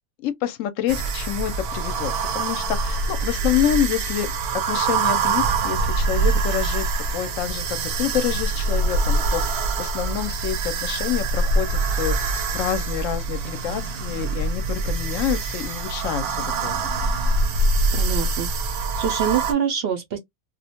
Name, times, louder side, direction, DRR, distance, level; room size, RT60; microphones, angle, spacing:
voice 1, 0.2-16.8, left 11 dB, 70° left, 0.9 m, -27 dB
sound 1, 0.9-19.5, right 3 dB, 90° right, 1.1 m, -24 dB
voice 2, 17.9-20.2, right 7 dB, 60° right, 0.6 m, -26 dB
2.4 x 2.1 x 2.8 m
omnidirectional pair, 1.6 m